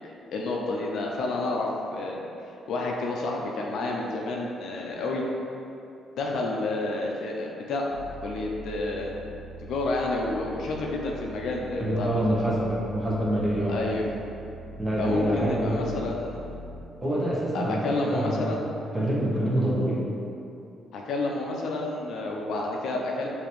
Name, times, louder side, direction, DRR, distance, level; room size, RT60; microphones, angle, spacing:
voice 1, 0.3-2.2 2.7-5.2 6.2-7.8 8.2-9.1 9.6-12.2 13.7-14.0 15.0-16.4 17.5-18.6 20.9-23.3, left 2 dB, 75° left, -1 dB, 0.5 m, -29 dB
sound 1, 7.9-16.8, equal, 90° right, 0.4 m, -43 dB
voice 2, 11.8-13.8 14.8-15.9 17.0-18.6 18.9-20.0, right 1 dB, 10° right, -6 dB, 1.0 m, -26 dB
5.0 x 2.7 x 3.1 m, 2.7 s
cardioid pair, 90°, 0 cm